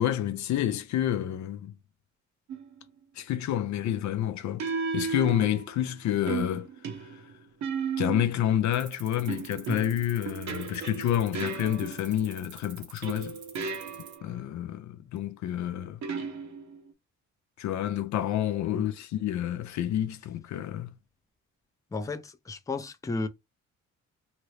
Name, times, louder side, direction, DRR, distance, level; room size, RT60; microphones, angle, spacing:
voice 1, 0.0-1.7 3.2-6.7 7.0-7.2 8.0-13.4 14.2-16.0 17.6-20.9, left 11 dB, 70° left, 0.5 m, -29 dB
sound 1, 2.5-2.8 4.6-5.8 6.3-8.5 9.3-12.3 13.0-14.3 16.0-16.9, right 5 dB, 65° right, 0.8 m, -35 dB
sound 2, 8.7-14.2, right 8 dB, 85° right, 1.0 m, -47 dB
voice 2, 21.9-23.3, left 3 dB, 10° left, 0.4 m, -33 dB
2.9 x 2.6 x 3.1 m
cardioid pair, 90°, 30 cm